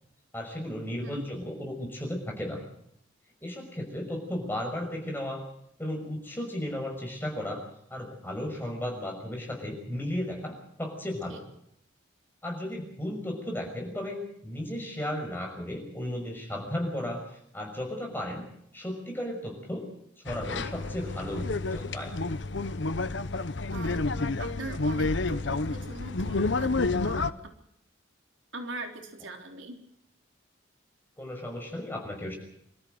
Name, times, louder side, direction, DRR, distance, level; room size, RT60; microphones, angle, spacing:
voice 1, 0.3-2.6 3.4-5.4 5.8-7.6 7.9-11.4 12.4-18.4 18.7-19.9 20.2-21.4 21.7-22.1 31.2-32.4, left 1 dB, 10° left, 1 dB, 6.1 m, -35 dB
sound 1, 20.3-27.3, left 3 dB, 65° left, 0.9 m, -29 dB
voice 2, 23.7-24.1 24.4-26.7 27.0-27.4 28.5-29.8, right 2 dB, 80° right, 4 dB, 3.6 m, -41 dB
26.0 x 14.0 x 7.9 m, 0.73 s
head